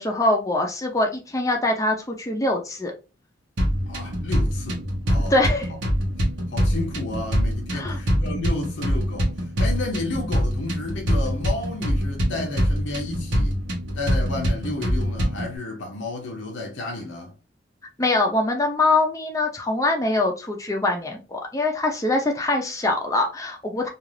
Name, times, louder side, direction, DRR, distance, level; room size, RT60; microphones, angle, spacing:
voice 1, 0.0-2.9 5.3-5.7 7.7-8.0 18.0-23.9, left 2 dB, 20° left, 0.4 m, -23 dB
sound 1, 3.6-15.6, equal, 90° right, 0.9 m, -24 dB
voice 2, 3.9-5.4 5.7-5.8 6.5-9.3 9.6-13.6 13.9-17.3, left 2 dB, 85° left, 0.6 m, -32 dB
2.4 x 2.3 x 3.1 m
head